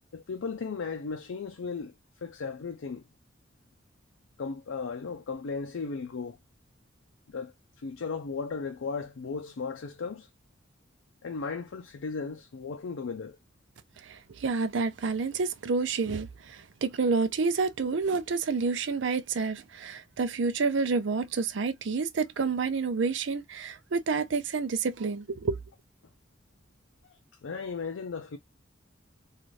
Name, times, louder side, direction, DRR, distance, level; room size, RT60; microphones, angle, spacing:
voice 1, 0.1-1.9 2.2-3.0 4.4-6.4 7.3-10.3 11.2-13.4 27.1-28.4, left 5 dB, 90° left, 0.5 m, -36 dB
voice 2, 14.1-25.6, right 4 dB, 70° right, 0.5 m, -29 dB
3.1 x 2.4 x 2.5 m
head